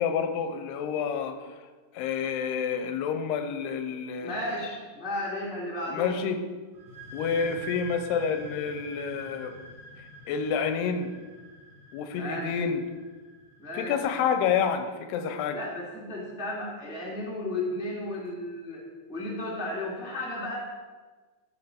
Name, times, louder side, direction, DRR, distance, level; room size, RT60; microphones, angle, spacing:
voice 1, 0.0-1.4 1.9-4.4 5.9-6.4 7.1-9.6 10.3-11.1 11.9-12.8 13.7-15.6, left 6 dB, 90° left, 8 dB, 2.8 m, -28 dB
voice 2, 4.2-6.2 12.1-12.5 13.6-13.9 15.5-18.8 19.1-20.6, left 1 dB, ahead, -4 dB, 0.9 m, -34 dB
sound 1, 6.7-14.2, equal, 40° right, 2.5 m, -46 dB
13.0 x 5.9 x 5.2 m, 1.4 s
omnidirectional pair, 4.6 m